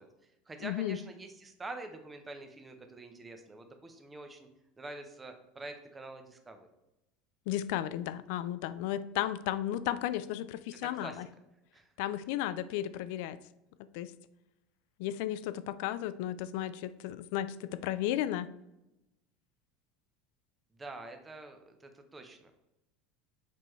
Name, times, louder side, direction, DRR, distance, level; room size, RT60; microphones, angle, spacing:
voice 1, 0.0-4.5 4.8-6.7 10.8-11.3 11.7-11.9 20.7-22.5, right 2 dB, 15° right, 5 dB, 0.7 m, -46 dB
voice 2, 0.6-1.0 7.5-11.3 12.0-13.4 13.9-14.1 15.0-18.5, left 12 dB, 65° left, 15 dB, 0.4 m, -34 dB
6.7 x 4.7 x 3.1 m, 0.89 s
supercardioid pair, 150°, 0 cm